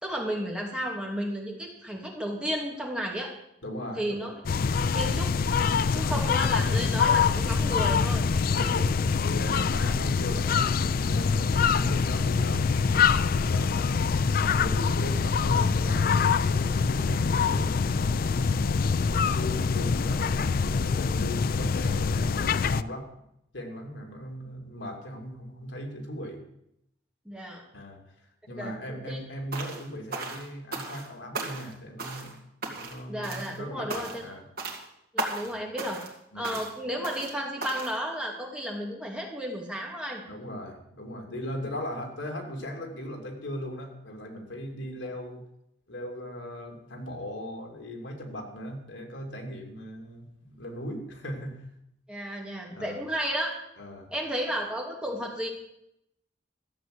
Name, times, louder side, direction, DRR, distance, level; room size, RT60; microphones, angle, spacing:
voice 1, 0.0-3.3 4.0-4.3 4.7-5.3 5.9-8.3 27.2-27.6 28.6-29.2 33.1-34.1 35.1-36.0 36.3-40.2 52.1-53.5 54.1-55.5, equal, 5° right, -1 dB, 2.5 m, -33 dB
voice 2, 3.6-4.4 5.8-6.3 8.6-12.7 13.3-18.3 18.9-23.2 23.5-26.4 27.7-28.0 28.5-34.5 36.3-36.6 40.3-45.4 45.9-51.6 52.7-53.0 53.8-54.1, equal, 85° left, 2 dB, 2.8 m, -38 dB
sound 1, 4.5-22.8, left 5 dB, 50° left, 0.4 m, -25 dB
sound 2, 29.5-29.8 30.1-31.1 31.3-31.7 32.0-32.3 32.6-33.0 33.2-33.6 33.9-34.3 34.6-34.8 35.2-35.5 35.8-36.1 36.4-36.7 37.0-37.3 37.6-38.0, right 3 dB, 55° right, 2.4 m, -35 dB
14.0 x 7.9 x 7.8 m, 0.80 s
head